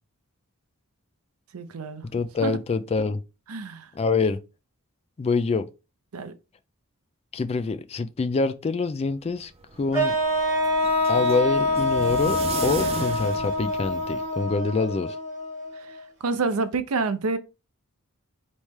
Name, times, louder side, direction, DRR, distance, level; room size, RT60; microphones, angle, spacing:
voice 1, 1.5-2.0 2.4-2.6 3.5-3.9 6.1-6.3 16.2-17.4, right 4 dB, 75° right, 0.6 m, -27 dB
voice 2, 2.1-3.2 3.9-4.4 5.2-5.7 7.3-9.5 9.8-10.1 11.1-12.4 12.6-15.2, left 4 dB, 30° left, 0.3 m, -25 dB
sound 1, 9.4-14.4, right 4 dB, 25° right, 0.5 m, -36 dB
sound 2, 9.9-16.0, left 1 dB, 10° right, 2.3 m, -25 dB
4.2 x 3.1 x 3.5 m
head